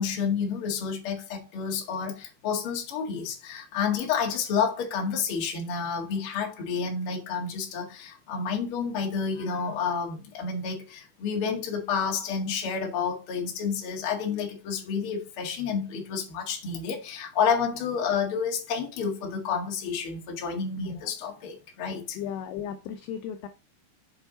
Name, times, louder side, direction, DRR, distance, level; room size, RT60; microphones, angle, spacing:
voice 1, 0.0-22.2, left 6 dB, 55° left, 1.5 m, -30 dB
voice 2, 22.2-23.5, left 8 dB, 85° left, 2.3 m, -35 dB
7.1 x 5.8 x 4.0 m
omnidirectional pair, 5.3 m